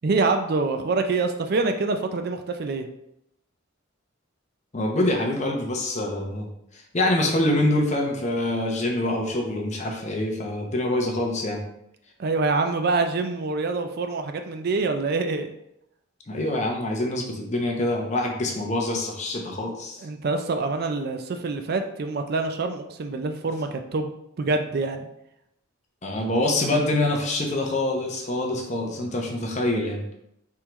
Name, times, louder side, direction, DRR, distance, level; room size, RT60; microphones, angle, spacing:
voice 1, 0.0-2.9 12.2-15.5 20.0-24.1 24.4-25.1, right 3 dB, 45° right, 6 dB, 0.4 m, -25 dB
voice 2, 4.7-6.5 6.7-11.6 16.3-20.0 26.0-30.0, left 1 dB, 35° left, 1 dB, 0.7 m, -25 dB
4.5 x 3.6 x 3.0 m, 0.79 s
head